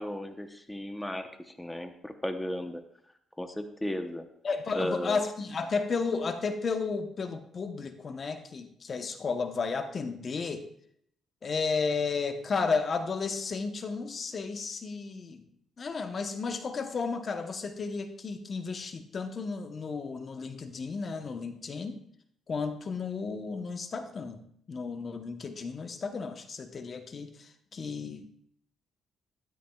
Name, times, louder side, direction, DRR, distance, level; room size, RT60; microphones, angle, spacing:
voice 1, 0.0-2.8 3.4-4.3 4.7-5.2, left 1 dB, 10° left, 7 dB, 0.9 m, -35 dB
voice 2, 4.4-10.7 11.4-15.5 15.8-22.0 22.5-28.3, left 4 dB, 45° left, 8 dB, 0.9 m, -33 dB
13.0 x 12.5 x 2.3 m, 0.68 s
cardioid pair, 90°, 0 cm